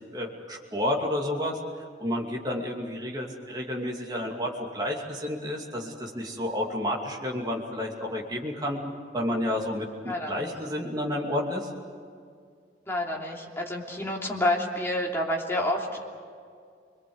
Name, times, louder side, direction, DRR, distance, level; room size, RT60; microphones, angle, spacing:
voice 1, 0.1-8.8 9.1-11.7, left 1 dB, 20° right, -1 dB, 2.6 m, -31 dB
voice 2, 10.1-10.5 12.9-16.0, left 1 dB, 15° left, -2 dB, 3.1 m, -29 dB
28.0 x 22.0 x 8.0 m, 2.2 s
head